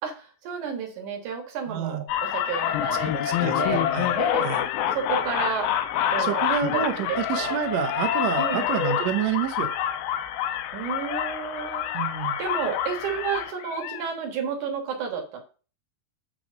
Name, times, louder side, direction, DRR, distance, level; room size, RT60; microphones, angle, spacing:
voice 1, 0.0-3.9 4.2-4.5 4.9-5.7 6.1-6.4 6.7-6.8 7.1-7.6 8.4-8.6 10.7-11.9 12.4-15.4, right 6 dB, 60° right, 4 dB, 2.8 m, -31 dB
voice 2, 1.7-2.0 3.1-4.1 4.4-4.6 6.2-9.7 11.9-12.4, right 10 dB, 90° right, 8 dB, 1.5 m, -28 dB
sound 1, 2.1-14.1, left 10 dB, 80° left, 2.5 m, -27 dB
sound 2, 3.4-10.3 11.3-13.1, left 7 dB, 60° left, 2.9 m, -44 dB
8.8 x 3.4 x 6.3 m, 0.37 s
omnidirectional pair, 4.3 m